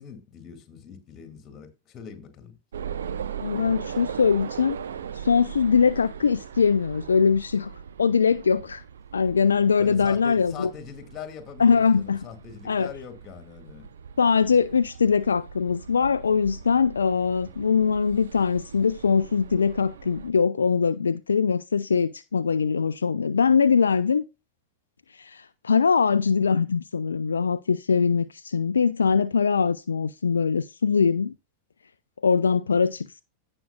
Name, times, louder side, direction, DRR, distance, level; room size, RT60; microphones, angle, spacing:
voice 1, 0.0-2.5 9.8-13.9, left 7 dB, 30° left, 1.9 m, -42 dB
sound 1, 2.7-20.3, right 7 dB, 65° right, 0.7 m, -40 dB
voice 2, 3.4-4.8 5.1-7.7 8.0-8.8 9.1-10.7 11.6-12.2 12.6-12.9 14.2-24.2 25.1-31.3 32.2-33.2, left 6 dB, 70° left, 0.3 m, -22 dB
16.0 x 6.1 x 2.3 m
figure-of-eight pair, 90°, 0 cm